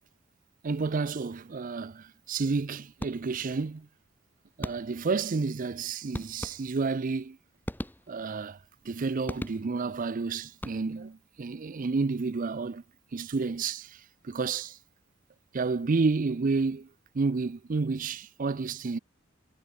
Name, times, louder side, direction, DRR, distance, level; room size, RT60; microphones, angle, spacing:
voice 1, 0.6-3.9 4.6-7.4 8.1-8.6 8.8-12.8 13.1-14.8 15.5-16.9 17.1-19.0, right 4 dB, 40° right, 0.5 m, -30 dB
sound 1, 3.0-3.6 4.6-5.2 6.1-7.0 7.6-8.4 9.3-10.0 10.5-11.2, equal, 10° left, 2.1 m, -39 dB
head